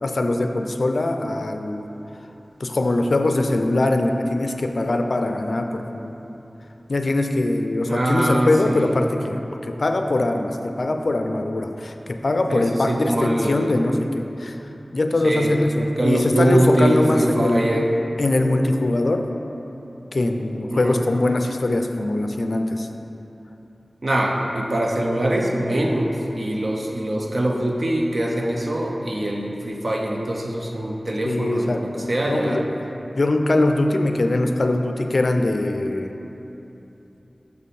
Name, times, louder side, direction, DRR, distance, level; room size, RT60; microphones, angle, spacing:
voice 1, 0.0-1.9 2.6-6.2 6.9-17.7 18.2-19.3 20.1-22.9 31.3-32.7 33.1-36.2, left 2 dB, 65° left, 5 dB, 0.4 m, -22 dB
voice 2, 7.9-9.0 12.5-13.8 15.2-17.9 20.7-21.0 24.0-32.6, right 1 dB, 50° right, 0 dB, 0.7 m, -23 dB
6.6 x 5.4 x 4.2 m, 3.0 s
wide cardioid pair, 80°, 0 cm